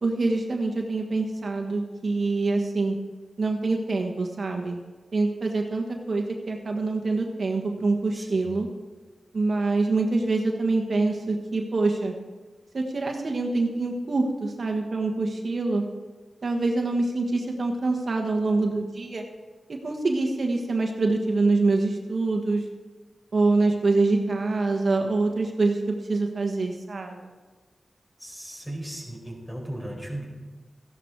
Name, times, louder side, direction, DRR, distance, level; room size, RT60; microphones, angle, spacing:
voice 1, 0.0-3.0 3.4-4.8 5.1-8.7 9.3-12.1 12.7-15.8 16.4-19.2 19.7-22.6 23.3-27.3, right 3 dB, 60° right, 2 dB, 1.3 m, -25 dB
voice 2, 8.1-8.5 28.2-30.2, right 1 dB, 10° left, 0 dB, 4.4 m, -36 dB
14.5 x 11.0 x 4.7 m, 1.3 s
wide cardioid pair, 75°, 0 cm